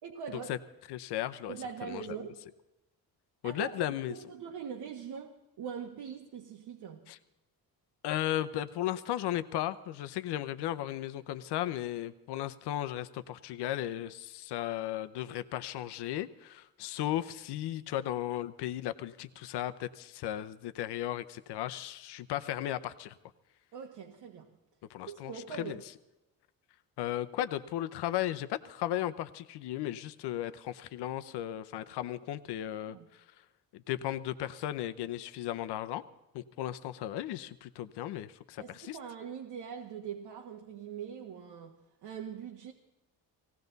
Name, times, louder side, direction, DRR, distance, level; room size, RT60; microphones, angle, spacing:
voice 1, 0.0-0.5 1.5-2.4 3.4-3.8 4.1-7.1 23.7-24.5 25.1-25.8 32.9-33.1 38.6-42.7, right 7 dB, 85° right, 1 dB, 1.5 m, -42 dB
voice 2, 0.9-1.5 1.9-2.1 3.4-4.2 7.1-7.2 8.0-23.1 24.9-25.3 25.6-25.8 27.0-33.2 33.7-36.0 36.3-39.0, left 13 dB, 90° left, 12 dB, 0.8 m, -35 dB
19.0 x 16.5 x 4.0 m, 0.94 s
cardioid pair, 100°, 39 cm